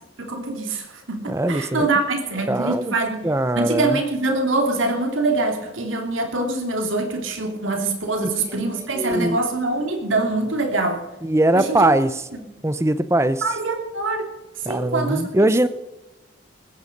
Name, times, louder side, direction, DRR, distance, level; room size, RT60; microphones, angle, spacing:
voice 1, 0.2-3.3 3.6-11.0 11.5-11.9 13.4-14.3 14.6-15.3, right 2 dB, 85° right, 3 dB, 2.8 m, -24 dB
voice 2, 1.3-1.9 2.5-2.9 3.2-4.0 8.2-8.3 8.9-9.4 11.2-12.2 12.6-13.4 14.7-15.7, right 1 dB, 15° right, 14 dB, 0.6 m, -21 dB
20.5 x 9.5 x 5.3 m, 1.0 s
head